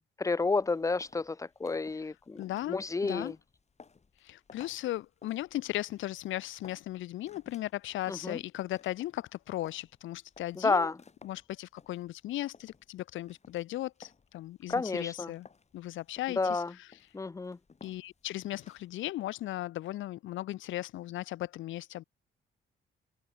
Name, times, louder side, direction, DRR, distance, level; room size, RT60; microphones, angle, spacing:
voice 1, 0.2-2.4 2.7-3.3 8.1-8.4 10.6-10.9 14.7-15.3 16.4-16.7 17.1-17.6, left 3 dB, 15° left, 0.5 m, -30 dB
sound 1, 0.5-19.0, left 5 dB, 35° left, 5.0 m, -58 dB
voice 2, 2.0-3.3 4.2-10.9 11.2-15.5 15.7-17.0 17.8-22.0, left 15 dB, 75° left, 0.7 m, -37 dB
cardioid pair, 90°, 20 cm